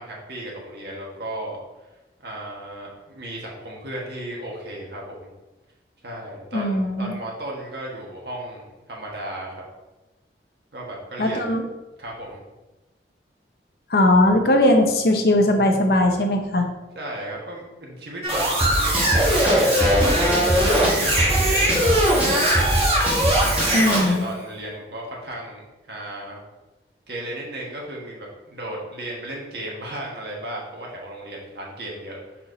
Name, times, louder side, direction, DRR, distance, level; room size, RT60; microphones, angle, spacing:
voice 1, 0.0-1.6 2.2-5.3 6.0-9.6 10.7-11.5 12.0-12.4 16.9-23.0 23.4-26.4 27.1-32.4, right 1 dB, 65° right, -2 dB, 1.4 m, -35 dB
voice 2, 6.5-7.1 11.2-11.6 13.9-16.7 23.7-24.3, left 1 dB, 60° left, 4 dB, 0.8 m, -19 dB
sound 1, 18.2-24.0, equal, 30° right, 1.5 m, -20 dB
Drum kit / Drum, 18.6-24.2, right 1 dB, 10° right, 1.1 m, -25 dB
4.4 x 4.1 x 5.2 m, 1.1 s
head